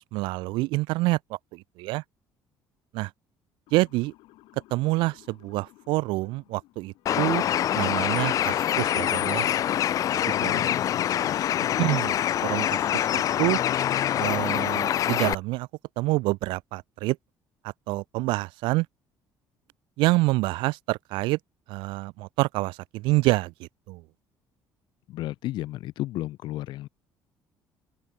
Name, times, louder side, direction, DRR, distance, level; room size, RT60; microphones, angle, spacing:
voice 1, 0.0-2.0 2.9-3.1 3.7-4.1 4.7-7.4 7.7-9.5 10.1-10.6 11.8-12.1 12.4-13.6 14.2-15.7 16.0-17.2 17.6-18.9 20.0-21.4 21.7-24.0, right 21 dB, 90° right, 0.4 m, -27 dB
Motor vehicle (road) / Siren, 3.7-7.8, left 19 dB, 85° left, 2.7 m, -57 dB
Bird, 7.1-15.3, left 11 dB, 45° left, 0.3 m, -25 dB
voice 2, 10.3-11.8 25.1-26.9, left 16 dB, 70° left, 0.8 m, -34 dB
cardioid pair, 130°, 8 cm